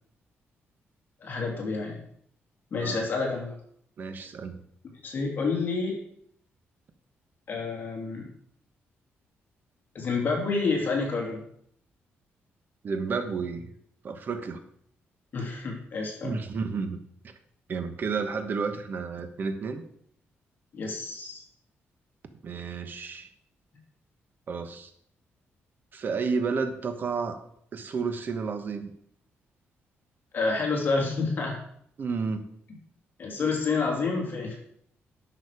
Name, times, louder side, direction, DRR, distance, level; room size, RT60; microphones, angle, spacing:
voice 1, 1.2-2.0 2.7-3.5 5.0-6.0 7.5-8.3 9.9-11.4 15.3-16.3 20.7-21.4 30.3-31.6 33.2-34.5, left 4 dB, 45° left, -1 dB, 2.9 m, -28 dB
voice 2, 2.7-3.1 4.0-4.6 12.8-13.7 14.0-14.6 16.2-17.0 17.7-19.8 22.4-23.3 24.5-24.9 25.9-27.4 27.7-28.9 32.0-32.5, right 5 dB, 45° right, 8 dB, 1.2 m, -31 dB
11.0 x 6.5 x 5.0 m, 0.66 s
cardioid pair, 140°, 5 cm